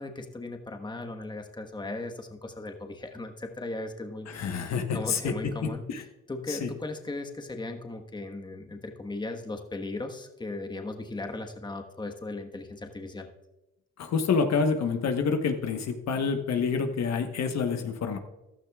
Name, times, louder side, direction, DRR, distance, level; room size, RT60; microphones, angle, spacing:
voice 1, 0.0-5.8 6.3-13.3, left 2 dB, 15° left, 4 dB, 1.3 m, -37 dB
voice 2, 4.3-6.0 6.5-6.7 14.0-18.2, left 5 dB, 60° left, 6 dB, 1.2 m, -28 dB
15.0 x 12.0 x 2.4 m, 0.97 s
cardioid pair, 90°, 30 cm